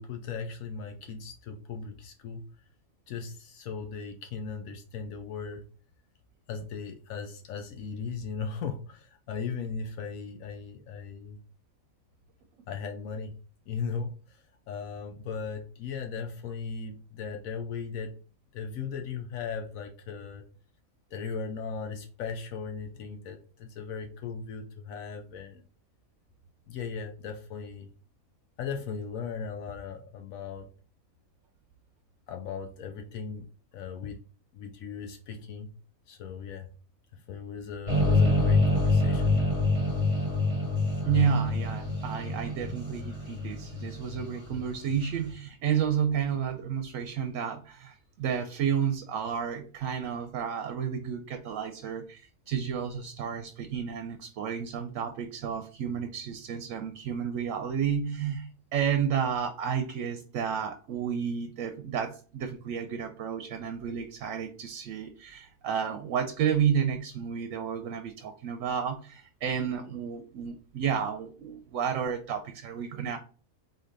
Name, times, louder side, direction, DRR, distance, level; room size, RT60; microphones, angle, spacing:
voice 1, 0.0-2.4 3.1-5.6 6.5-11.4 12.7-13.3 13.7-18.1 18.5-20.4 21.1-25.6 26.7-27.9 28.6-30.7 32.3-33.5 33.7-34.2 34.5-35.7 36.1-36.7 37.1-39.5, left 5 dB, 80° left, 4 dB, 1.1 m, -37 dB
sound 1, 37.9-45.0, left 2 dB, 25° left, 1.8 m, -26 dB
voice 2, 41.1-73.2, right 8 dB, 70° right, 7 dB, 0.9 m, -31 dB
4.1 x 3.3 x 3.8 m, 0.39 s
omnidirectional pair, 1.5 m